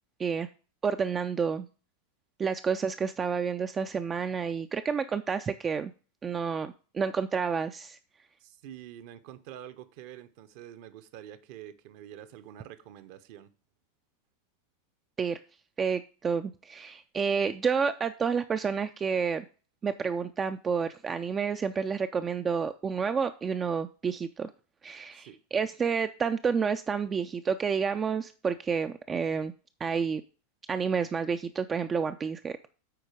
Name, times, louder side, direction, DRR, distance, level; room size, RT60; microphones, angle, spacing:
voice 1, 0.8-1.7 2.4-5.9 6.2-8.0 15.2-15.4 15.8-19.5 19.8-24.5 24.8-29.5 29.8-30.2 30.7-32.6, right 6 dB, 20° right, 0.4 m, -29 dB
voice 2, 8.4-13.5 25.1-25.4, right 11 dB, 45° right, 0.7 m, -47 dB
9.3 x 4.4 x 4.9 m
figure-of-eight pair, 90°, 0 cm